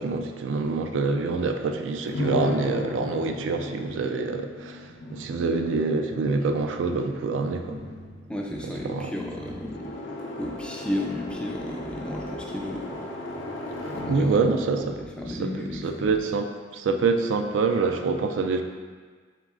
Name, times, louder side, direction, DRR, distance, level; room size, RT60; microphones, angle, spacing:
voice 1, 0.0-7.8 8.8-9.1 13.8-14.9 15.3-18.6, right 4 dB, 80° right, 6 dB, 0.3 m, -26 dB
sound 1, 2.1-15.9, left 2 dB, 85° left, 0.6 m, -36 dB
voice 2, 8.3-9.8 10.4-13.0 13.9-14.4 14.8-16.2, left 1 dB, 5° left, -1 dB, 0.3 m, -33 dB
3.7 x 3.1 x 3.6 m, 1.6 s
head